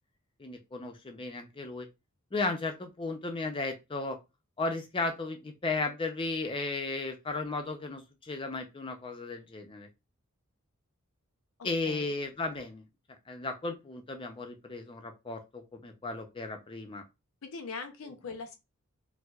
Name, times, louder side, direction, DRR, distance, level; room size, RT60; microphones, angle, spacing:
voice 1, 0.4-1.9 2.3-4.2 4.6-9.9 11.6-12.8 13.3-17.0, left 3 dB, 25° left, 0.5 m, -35 dB
voice 2, 11.6-12.1 17.4-18.6, left 4 dB, 65° left, 0.6 m, -41 dB
4.4 x 2.0 x 2.3 m
head